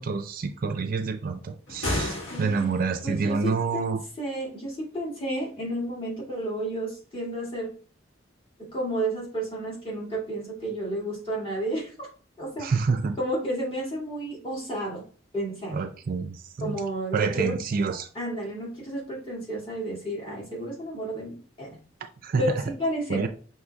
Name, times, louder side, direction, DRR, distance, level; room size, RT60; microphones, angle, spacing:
voice 1, 0.0-4.0 12.6-13.2 15.7-16.8 17.1-18.1 22.0-22.4 23.1-23.3, right 4 dB, 45° right, 8 dB, 0.4 m, -28 dB
sound 1, 1.7-3.0, left 1 dB, 75° left, 1.2 m, -31 dB
voice 2, 2.3-2.8 3.0-7.8 8.6-12.1 12.4-12.8 13.2-15.0 15.3-15.8 16.6-17.6 18.1-21.8 22.4-23.3, right 1 dB, 30° left, -5 dB, 2.1 m, -31 dB
5.8 x 2.9 x 2.3 m, 0.41 s
head